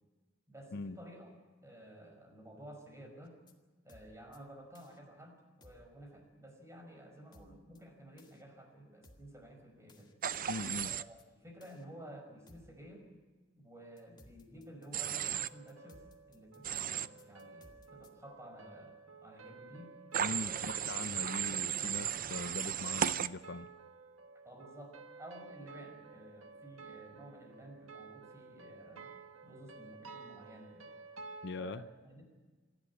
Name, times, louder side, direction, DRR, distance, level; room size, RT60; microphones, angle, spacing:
voice 1, 0.5-1.3 1.6-3.4 3.8-10.1 10.8-13.1 13.5-18.9 19.2-19.9 20.3-20.7 23.3-23.4 24.4-29.2 29.4-30.9 31.5-32.3, right 1 dB, 15° right, 5.3 m, -53 dB
sound 1, 3.2-3.5 3.9-4.4 4.7-5.0 5.6-5.9 7.3-7.8 8.2-8.4 9.0-9.3 9.9-10.4 10.7-11.2 11.6-11.8 12.5-12.8 14.0-18.1, left 1 dB, 25° left, 2.0 m, -61 dB
Human voice / Train, 10.2-11.0 14.9-15.5 16.6-17.1 20.1-23.3, right 9 dB, 45° right, 0.6 m, -35 dB
voice 2, 10.5-10.9 20.2-23.7 31.4-31.8, left 3 dB, 60° left, 0.7 m, -41 dB
sound 2, 15.0-31.5, right 4 dB, 80° right, 1.6 m, -53 dB
26.5 x 11.5 x 9.7 m
head